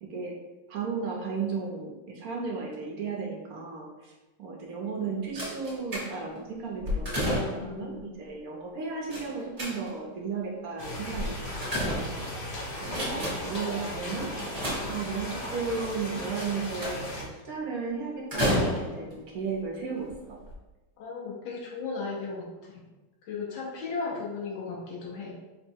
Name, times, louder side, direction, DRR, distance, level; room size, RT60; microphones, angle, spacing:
voice 1, 0.0-0.4 0.7-4.1 4.4-12.0 12.8-14.3 14.9-20.1, right 5 dB, 60° right, -1 dB, 1.0 m, -34 dB
sound 1, 5.4-6.4 6.8-7.8 9.1-10.1 11.1-12.4 12.8-13.6 14.4-15.4 16.4-17.2 18.3-19.1 20.0-20.1 20.4-20.5, equal, 30° right, 0.7 m, -31 dB
voice 2, 7.6-8.2 21.0-22.8 23.2-25.3, left 4 dB, 80° left, -4 dB, 1.5 m, -36 dB
sound 2, 10.8-17.2, left 1 dB, 60° left, 0.5 m, -37 dB
3.9 x 2.1 x 4.5 m, 1.1 s
omnidirectional pair, 2.1 m